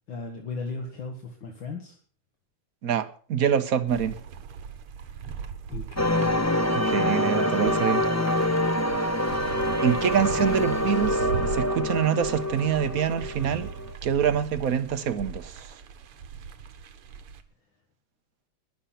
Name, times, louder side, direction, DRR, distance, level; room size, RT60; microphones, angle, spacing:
voice 1, 0.1-2.0 5.7-6.4, left 3 dB, 60° left, 2.2 m, -36 dB
voice 2, 2.8-4.1 6.7-8.0 9.8-13.7 14.0-15.7, right 8 dB, 55° right, 1.0 m, -25 dB
sound 1, 3.9-17.4, right 6 dB, 85° right, 2.0 m, -39 dB
sound 2, 6.0-13.9, left 1 dB, 15° left, 0.6 m, -26 dB
20.5 x 6.8 x 5.8 m
omnidirectional pair, 2.4 m